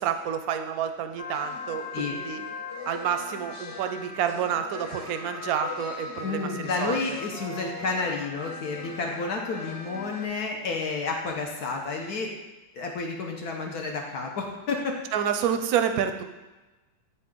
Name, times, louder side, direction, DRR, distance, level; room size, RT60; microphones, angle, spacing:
voice 1, 0.0-2.4 2.9-7.0 15.1-16.2, right 8 dB, 70° right, 8 dB, 0.9 m, -29 dB
sound 1, 1.2-10.3, left 4 dB, 85° left, 1.8 m, -39 dB
voice 2, 6.2-12.3 12.7-14.9, left 4 dB, 65° left, 1 dB, 1.2 m, -30 dB
8.1 x 4.3 x 3.6 m, 1.1 s
omnidirectional pair, 1.9 m